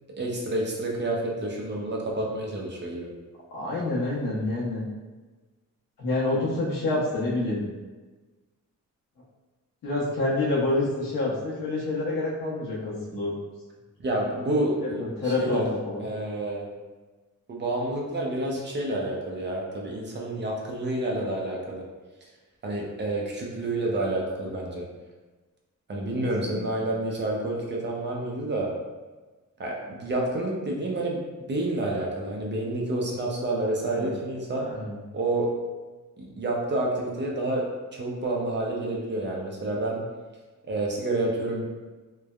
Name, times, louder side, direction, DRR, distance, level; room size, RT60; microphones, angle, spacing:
voice 1, 0.2-3.1 14.0-15.6 16.0-16.6 17.5-21.8 22.2-22.3 22.6-24.9 25.9-28.7 29.6-34.7 35.1-35.5 36.2-37.6 37.9-40.0 40.7-41.7, right 1 dB, 35° right, -2 dB, 0.5 m, -29 dB
voice 2, 3.5-4.8 6.0-7.6 9.8-13.3 14.8-16.0 26.4-26.8 33.9-34.1 34.6-35.0, left 2 dB, 90° left, -6 dB, 0.9 m, -28 dB
3.2 x 2.1 x 2.3 m, 1.3 s
cardioid pair, 115°, 32 cm